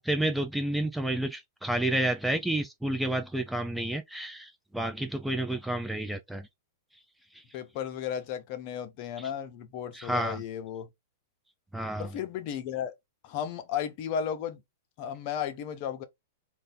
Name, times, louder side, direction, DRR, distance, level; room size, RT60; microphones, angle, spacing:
voice 1, 0.0-6.5 9.2-9.3 9.9-10.4 11.7-12.1, right 1 dB, 5° right, 0.4 m, -30 dB
voice 2, 7.5-10.9 12.0-12.9 13.2-14.6 15.0-16.0, left 9 dB, 45° left, 0.7 m, -34 dB
2.6 x 2.5 x 3.6 m
hypercardioid pair, 130°, 0 cm